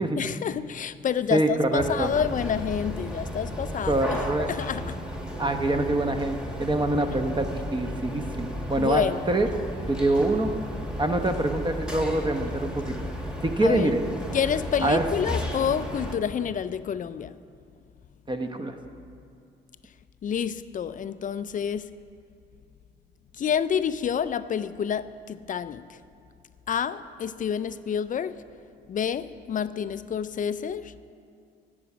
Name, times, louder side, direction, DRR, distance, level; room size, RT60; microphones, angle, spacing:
voice 1, 0.2-4.0 4.4-5.0 8.8-9.2 13.6-13.9 14.3-17.4 20.2-22.0 23.4-25.9 26.7-28.4 28.9-30.9, left 8 dB, 40° left, 0.4 m, -28 dB
voice 2, 1.3-2.1 3.8-4.5 5.4-9.5 9.9-10.5 11.0-13.1 13.4-14.0 14.8-15.1 18.3-18.8, right 2 dB, 20° right, 0.9 m, -25 dB
sound 1, 1.8-16.2, equal, 5° right, 1.5 m, -34 dB
11.0 x 4.9 x 8.3 m
hypercardioid pair, 55°, 21 cm